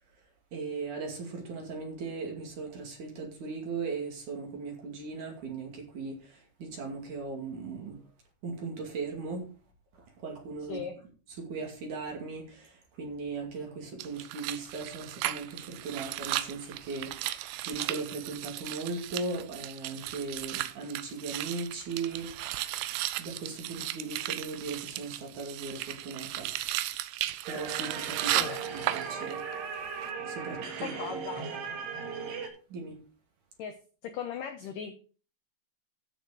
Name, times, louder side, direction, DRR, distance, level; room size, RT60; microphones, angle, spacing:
voice 1, 0.5-6.1 6.6-8.0 8.4-9.4 10.2-10.8 11.5-12.4 13.0-17.1 17.6-22.3 23.2-26.5 27.5-28.4 28.7-29.4 30.4-30.9 32.7-33.0, right 4 dB, 50° right, 2 dB, 3.4 m, -38 dB
voice 2, 10.7-11.0 28.2-28.6 30.8-31.6 33.6-33.8 34.0-34.9, left 7 dB, 80° left, 7 dB, 1.9 m, -38 dB
sound 1, 14.0-29.6 29.9-30.1, right 15 dB, 80° right, 2.3 m, -35 dB
sound 2, 27.5-32.5, right 6 dB, 65° right, 4.0 m, -37 dB
14.0 x 6.5 x 4.9 m, 0.38 s
omnidirectional pair, 5.2 m